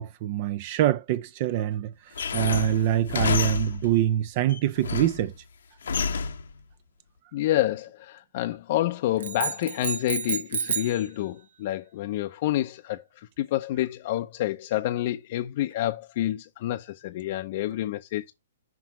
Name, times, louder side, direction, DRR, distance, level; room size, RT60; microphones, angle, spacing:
voice 1, 0.0-5.3, right 12 dB, 40° right, 0.4 m, -25 dB
sound 1, 2.1-4.0 4.5-5.3 5.8-6.5, left 5 dB, 80° left, 0.9 m, -28 dB
voice 2, 7.3-18.3, left 14 dB, 45° left, 0.5 m, -28 dB
sound 2, 9.2-11.0, right 7 dB, 70° right, 0.7 m, -30 dB
5.9 x 4.6 x 5.9 m
hypercardioid pair, 150°, 0 cm